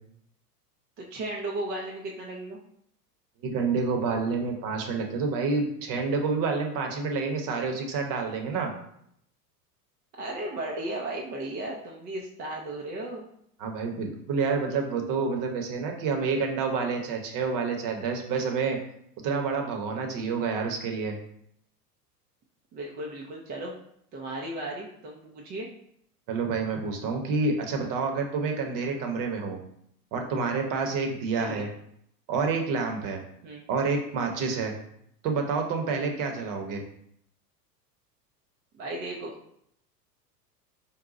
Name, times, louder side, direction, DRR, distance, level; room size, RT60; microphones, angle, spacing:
voice 1, 1.0-2.6 10.2-13.3 22.7-23.7 24.1-25.7 31.4-31.7 33.4-33.6 38.7-39.3, right 1 dB, 20° right, -2 dB, 0.4 m, -35 dB
voice 2, 3.4-8.7 13.6-18.8 19.2-21.2 26.3-29.6 30.1-31.7 32.3-33.2 33.7-34.7 35.2-36.8, right 4 dB, 40° right, 3 dB, 0.9 m, -28 dB
4.0 x 2.2 x 4.0 m, 0.72 s
hypercardioid pair, 95°, 48 cm